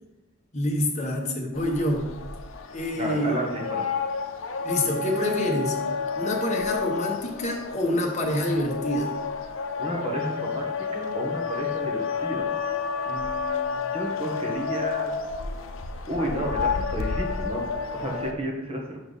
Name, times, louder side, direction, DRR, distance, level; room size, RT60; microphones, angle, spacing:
voice 1, 0.5-2.1 2.7-3.4 4.6-5.8 6.2-9.1, left 1 dB, 35° left, 1 dB, 1.1 m, -26 dB
sound 1, 1.5-18.3, left 5 dB, 85° left, 0.6 m, -30 dB
voice 2, 2.9-3.8 9.8-12.5 13.1-15.1 16.1-17.6 17.9-19.0, right 1 dB, 30° right, -1 dB, 1.4 m, -32 dB
6.1 x 4.4 x 5.0 m, 0.98 s
head